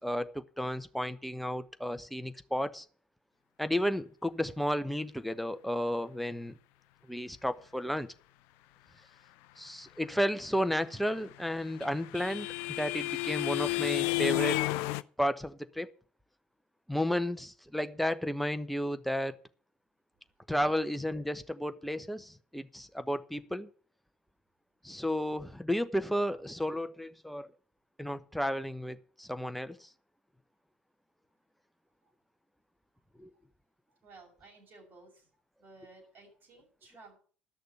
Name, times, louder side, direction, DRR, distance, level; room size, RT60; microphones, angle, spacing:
voice 1, 0.0-2.8 3.6-6.6 7.1-8.1 9.6-12.5 12.8-14.6 15.2-15.9 16.9-19.3 20.5-23.7 24.8-27.5 28.0-29.9 33.2-33.3, equal, ahead, 1.0 m, -33 dB
sound 1, 11.2-15.0, left 19 dB, 60° left, 0.5 m, -31 dB
voice 2, 33.9-35.3 35.6-37.2, right 3 dB, 45° right, 7.5 m, -55 dB
12.5 x 6.6 x 8.7 m
figure-of-eight pair, 65°, 5 cm